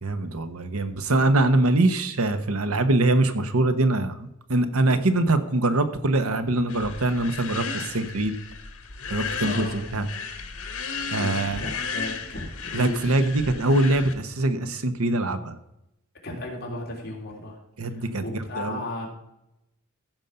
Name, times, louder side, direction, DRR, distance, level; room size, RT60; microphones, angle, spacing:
voice 1, 0.0-8.3 9.1-10.1 11.1-11.6 12.7-15.6 17.8-18.2 18.6-18.8, right 2 dB, 80° right, 9 dB, 1.1 m, -23 dB
sound 1, 6.7-14.1, left 5 dB, 85° left, 1.5 m, -34 dB
voice 2, 9.4-9.8 11.1-13.3 16.2-17.6 17.9-19.1, left 1 dB, 45° left, -1 dB, 3.1 m, -35 dB
15.0 x 5.4 x 5.6 m, 0.86 s
head